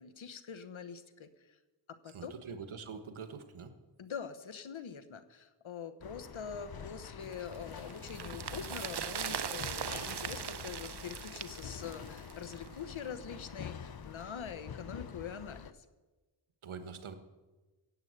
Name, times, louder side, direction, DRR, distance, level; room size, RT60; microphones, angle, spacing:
voice 1, 0.0-1.5 1.9-2.3 4.0-15.8, left 7 dB, 75° left, 12 dB, 1.2 m, -44 dB
voice 2, 2.1-3.7 16.6-17.2, right 5 dB, 80° right, 9 dB, 1.4 m, -44 dB
sound 1, 6.0-15.7, left 7 dB, 50° left, 0.8 m, -46 dB
sound 2, 7.3-12.7 13.0-13.1, right 8 dB, 55° right, 0.8 m, -40 dB
16.0 x 8.3 x 8.0 m, 1.2 s
cardioid pair, 50°, 48 cm